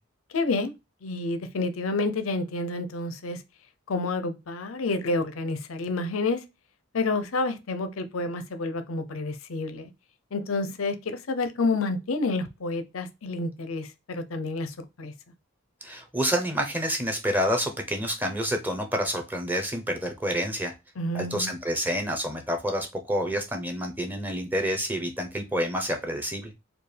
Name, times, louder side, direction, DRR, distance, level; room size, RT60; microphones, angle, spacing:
voice 1, 0.3-0.7 1.0-3.4 3.9-6.4 6.9-9.9 10.3-15.1 21.0-21.5, left 3 dB, 85° left, 0.6 m, -29 dB
voice 2, 15.8-20.7 21.1-26.5, equal, 10° right, 0.7 m, -28 dB
4.4 x 2.3 x 3.3 m
head